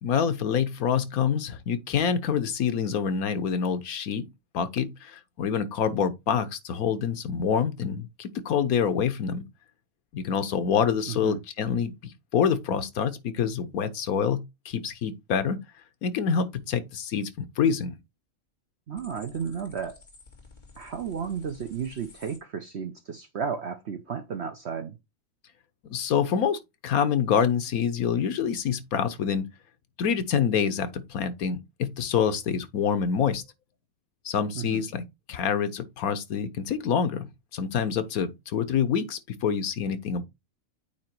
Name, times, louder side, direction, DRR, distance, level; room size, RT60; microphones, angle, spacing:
voice 1, 0.0-4.3 4.5-9.4 10.1-15.6 16.0-18.0 25.9-29.5 30.0-33.4 34.2-40.3, left 7 dB, 80° left, 1.4 m, -26 dB
voice 2, 11.1-11.4 18.9-20.0 20.8-25.0 34.5-34.8, right 7 dB, 55° right, 1.0 m, -33 dB
sound 1, 19.0-22.4, left 3 dB, 30° left, 2.1 m, -52 dB
8.7 x 2.9 x 4.5 m
omnidirectional pair, 1.5 m